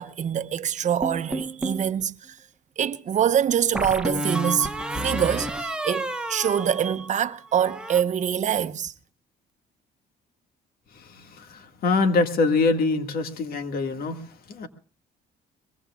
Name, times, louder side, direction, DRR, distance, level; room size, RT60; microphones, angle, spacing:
voice 1, 0.0-2.4 2.8-4.7 5.0-8.9, right 9 dB, 45° right, 1.0 m, -25 dB
sound 1, 1.0-1.9 3.7-7.2 7.5-8.0, right 1 dB, 5° right, 1.2 m, -30 dB
voice 2, 10.9-14.7, left 3 dB, 60° left, 2.0 m, -25 dB
23.0 x 22.0 x 2.4 m
cardioid pair, 110°, 17 cm